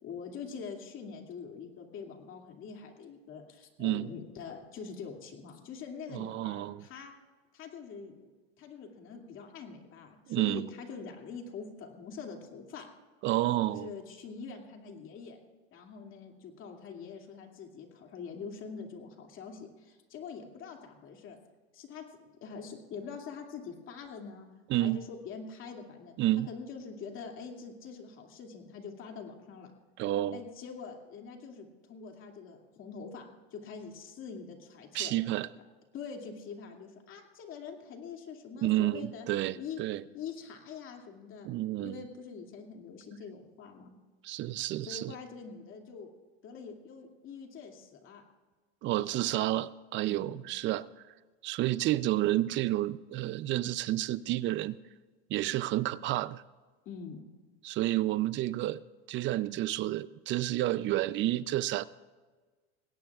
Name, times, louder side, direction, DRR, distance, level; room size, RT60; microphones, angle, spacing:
voice 1, 0.0-7.1 7.5-8.3 8.6-12.9 13.6-15.4 15.7-21.4 21.7-22.0 22.4-24.5 24.8-26.1 26.5-29.7 30.3-35.2 35.9-39.3 39.6-39.8 40.1-41.5 41.8-43.9 44.8-46.1 46.4-48.2 49.0-49.3 50.1-50.4 56.9-57.2, left 5 dB, 40° left, 3 dB, 2.4 m, -44 dB
voice 2, 6.1-6.8 10.3-10.7 13.2-13.9 24.7-25.0 26.2-26.5 30.0-30.4 34.9-35.5 38.6-40.0 41.4-42.0 44.2-45.1 48.8-50.9 51.4-54.8 55.3-56.4 57.6-58.8 59.1-61.8, right 15 dB, 40° right, 18 dB, 0.5 m, -30 dB
20.0 x 17.0 x 2.4 m, 1.3 s
supercardioid pair, 115°, 31 cm